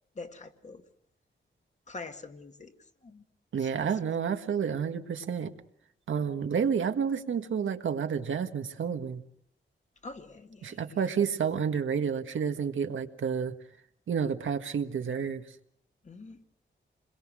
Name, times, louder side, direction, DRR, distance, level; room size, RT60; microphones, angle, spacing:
voice 1, 0.1-0.8 1.9-3.2 3.6-4.0 10.0-11.0 16.0-16.4, left 3 dB, 35° left, 1.9 m, -45 dB
voice 2, 3.5-5.5 6.1-9.2 10.6-13.6 14.1-15.4, right 7 dB, 80° right, 1.7 m, -30 dB
28.5 x 22.0 x 6.2 m
wide cardioid pair, 175°, 20 cm